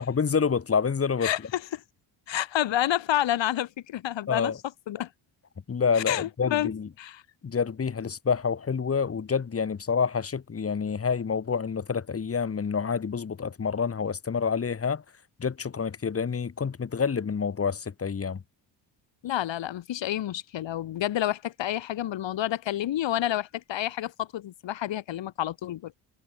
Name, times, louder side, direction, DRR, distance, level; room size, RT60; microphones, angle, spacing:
voice 1, 0.0-1.3 4.3-4.6 5.7-6.9 7.4-15.0 15.4-18.4, left 6 dB, 30° left, 1.9 m, -28 dB
voice 2, 1.2-1.8 2.3-4.5 4.9-5.1 6.0-6.7 7.0-7.2 19.2-25.9, left 12 dB, 65° left, 2.5 m, -29 dB
cardioid pair, 115°, 49 cm